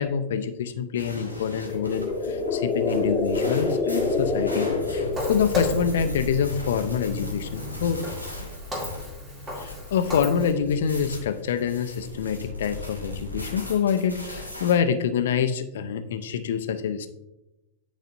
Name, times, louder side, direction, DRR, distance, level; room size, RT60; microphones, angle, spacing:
voice 1, 0.0-8.0 9.6-17.1, left 7 dB, 60° left, 10 dB, 0.5 m, -26 dB
sound 1, 1.0-14.7, left 2 dB, 90° right, 1.1 m, -37 dB
sound 2, 1.6-5.8, left 3 dB, 10° left, 1.2 m, -27 dB
Walk footsteps, 5.1-10.5, left 1 dB, 20° right, 1.9 m, -35 dB
9.2 x 4.2 x 2.6 m, 0.93 s
figure-of-eight pair, 90°, 0 cm